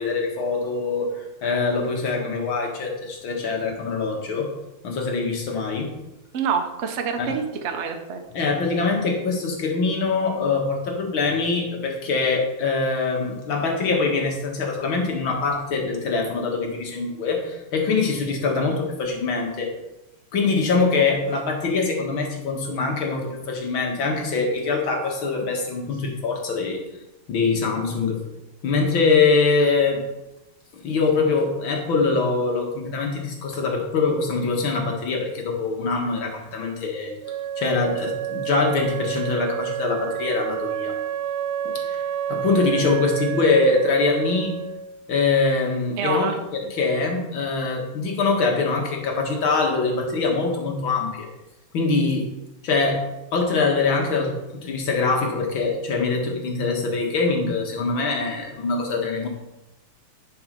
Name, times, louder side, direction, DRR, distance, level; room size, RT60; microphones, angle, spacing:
voice 1, 0.0-4.5 4.8-5.9 7.2-7.4 8.3-19.7 20.3-26.8 27.3-28.2 28.6-30.0 30.8-37.1 37.6-41.0 41.7-42.0 42.3-44.5 45.1-46.3 46.7-51.3 51.7-52.3 52.6-53.0 53.3-59.3, left 4 dB, 65° left, 1 dB, 2.3 m, -23 dB
voice 2, 6.3-8.2 42.8-42.9 46.0-46.4, right 6 dB, 50° right, 5 dB, 0.9 m, -27 dB
Wind instrument woodwind instrument, 37.2-44.9, right 10 dB, 80° right, 0.8 m, -29 dB
10.5 x 4.8 x 5.3 m, 0.94 s
omnidirectional pair, 2.4 m